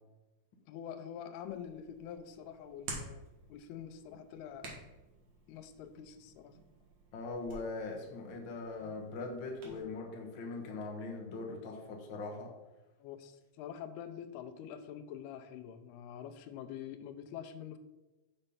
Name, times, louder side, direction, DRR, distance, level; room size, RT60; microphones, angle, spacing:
voice 1, 0.7-4.8 5.5-6.6 13.0-17.8, left 9 dB, 90° left, 9 dB, 2.6 m, -46 dB
Hands, 1.4-9.8, right 3 dB, 55° right, 2.5 m, -51 dB
voice 2, 7.1-12.6, left 3 dB, 70° left, 0 dB, 1.1 m, -41 dB
6.9 x 5.4 x 5.5 m, 1.1 s
omnidirectional pair, 4.5 m